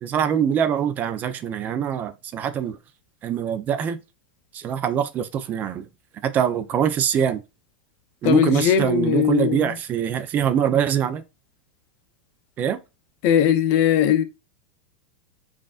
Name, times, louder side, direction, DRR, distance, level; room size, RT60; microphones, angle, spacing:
voice 1, 0.0-2.8 3.2-4.0 4.5-5.9 6.2-7.4 8.2-11.2 12.6-12.8, right 8 dB, 35° right, 0.5 m, -23 dB
voice 2, 8.2-9.8 13.2-14.2, left 10 dB, 50° left, 0.6 m, -19 dB
5.2 x 2.5 x 2.4 m
hypercardioid pair, 110°, 5 cm